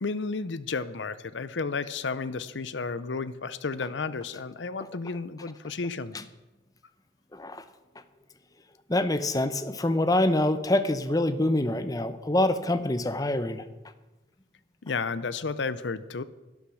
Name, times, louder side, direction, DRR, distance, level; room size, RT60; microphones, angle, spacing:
voice 1, 0.0-6.2 14.8-16.2, left 4 dB, 90° left, 16 dB, 0.7 m, -32 dB
voice 2, 7.3-7.6 8.9-13.6, left 1 dB, 20° left, 11 dB, 0.7 m, -25 dB
12.0 x 11.5 x 6.3 m, 1.0 s
head